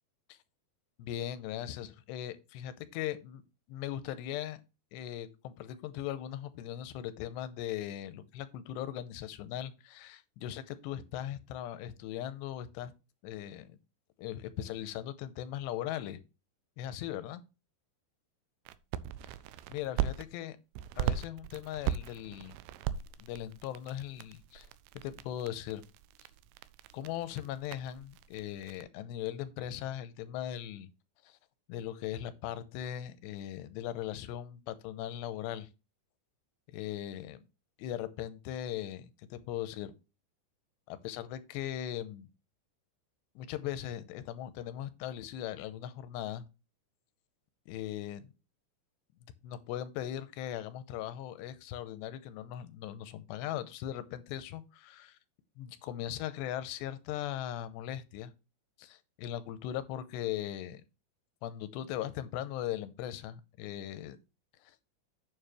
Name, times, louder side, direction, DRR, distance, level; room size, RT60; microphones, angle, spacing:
voice 1, 1.0-3.4 3.7-4.6 4.9-12.9 13.2-13.8 14.2-16.2 16.8-17.4 19.7-20.6 21.0-22.6 23.2-24.7 25.0-25.8 26.9-30.9 31.2-31.4 31.7-35.7 36.7-37.4 37.8-39.9 40.9-42.3 43.4-46.4 47.7-48.3 49.4-55.2 55.6-58.3 58.8-60.8 61.4-64.2 64.6-64.7, left 11 dB, 85° left, 2.9 m, -39 dB
sound 1, 18.7-20.3 20.7-28.8, right 10 dB, 85° right, 2.7 m, -38 dB
9.0 x 7.2 x 3.1 m
omnidirectional pair, 5.0 m